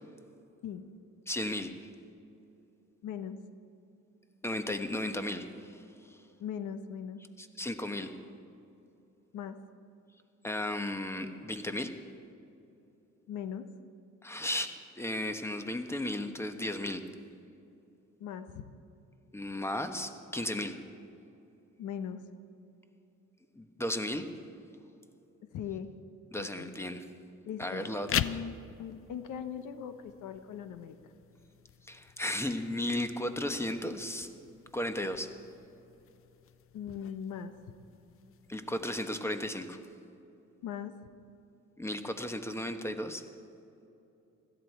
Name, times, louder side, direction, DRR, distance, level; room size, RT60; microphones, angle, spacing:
voice 1, 1.3-1.7 4.4-5.8 6.1-6.2 7.4-8.1 10.4-11.9 14.2-17.0 19.3-20.8 23.5-24.3 26.3-27.0 27.6-28.2 31.9-34.3 34.7-35.3 38.5-39.8 41.8-43.2, left 1 dB, 10° left, 8 dB, 1.1 m, -35 dB
voice 2, 3.0-3.4 6.4-7.2 9.3-9.6 13.3-13.7 18.2-18.7 20.3-20.4 21.8-22.2 25.5-25.9 26.4-26.7 27.4-31.0 36.7-37.5 40.6-40.9, left 8 dB, 85° left, 10 dB, 0.9 m, -40 dB
sound 1, 27.9-38.9, left 10 dB, 45° left, 0.5 m, -42 dB
16.5 x 13.5 x 4.5 m, 2.9 s
cardioid pair, 90°, 30 cm